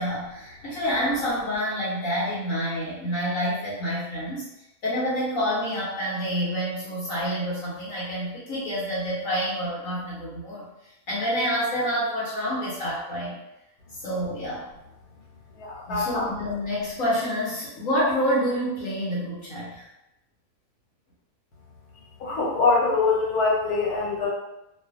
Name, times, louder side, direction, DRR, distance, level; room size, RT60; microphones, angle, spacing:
voice 1, 0.0-4.5 4.8-10.7 11.1-13.4 14.0-14.7 15.9-19.8, equal, 65° left, -7 dB, 1.1 m, -28 dB
voice 2, 15.6-16.2 22.2-24.3, left 4 dB, 85° left, -4 dB, 1.3 m, -23 dB
2.6 x 2.4 x 2.4 m, 0.90 s
omnidirectional pair, 1.6 m